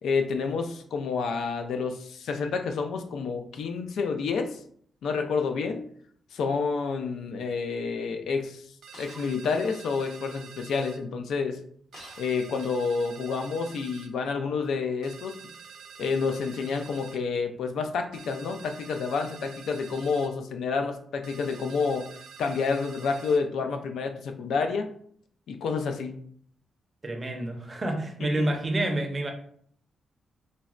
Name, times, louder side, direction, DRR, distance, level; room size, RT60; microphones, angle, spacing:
voice 1, 0.0-4.6 5.0-5.8 6.3-8.6 9.0-11.6 12.2-15.3 16.0-22.1 22.4-24.9 25.5-26.2 28.2-28.5, left 5 dB, 85° left, 5 dB, 0.3 m, -29 dB
sound 1, 8.8-11.0 11.9-14.1 15.0-17.2 18.1-20.3 21.2-23.4, right 6 dB, 85° right, 0.4 m, -47 dB
Shatter, 8.9-9.5 11.9-13.0, left 1 dB, 65° left, 0.9 m, -49 dB
voice 2, 27.0-29.3, right 1 dB, 25° right, 2 dB, 0.5 m, -28 dB
3.9 x 2.1 x 2.4 m, 0.62 s
wide cardioid pair, 145°, 0 cm